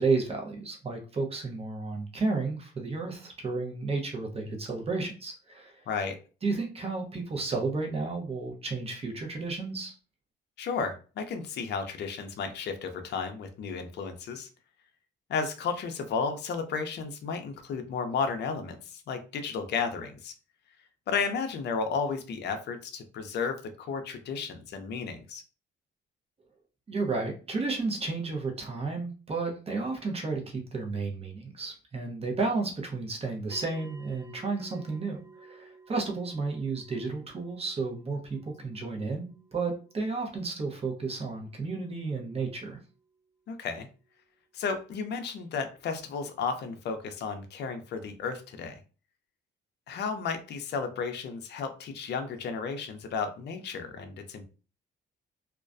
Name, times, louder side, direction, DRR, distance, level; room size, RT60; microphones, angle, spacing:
voice 1, 0.0-5.8 6.4-9.9 26.9-42.8, right 3 dB, 30° right, 2 dB, 0.7 m, -32 dB
voice 2, 10.6-14.5 15.3-20.3 21.1-25.4 43.5-43.9 44.5-48.8 49.9-54.5, left 5 dB, 60° left, 6 dB, 0.5 m, -33 dB
sound 1, 33.5-44.1, right 4 dB, 15° right, 0.3 m, -56 dB
2.3 x 2.1 x 2.5 m, 0.36 s
cardioid pair, 90°, 20 cm